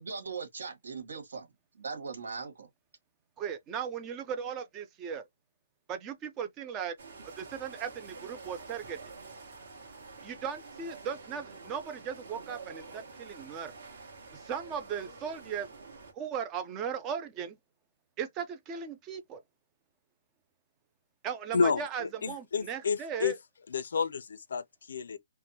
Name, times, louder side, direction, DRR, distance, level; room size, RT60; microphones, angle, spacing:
voice 1, 0.0-1.5 1.8-2.7, right 5 dB, 75° right, 1.4 m, -39 dB
voice 2, 3.4-5.2 5.9-7.0 7.4-9.0 10.2-13.7 14.3-15.7 16.1-17.6 18.2-19.4 21.2-23.4, right 7 dB, 15° right, 0.3 m, -37 dB
sound 1, 7.0-16.1, right 4 dB, 45° right, 1.3 m, -48 dB
voice 3, 21.5-23.4 23.7-25.2, left 5 dB, 60° left, 0.4 m, -30 dB
3.4 x 2.1 x 2.7 m
hypercardioid pair, 175°, 0 cm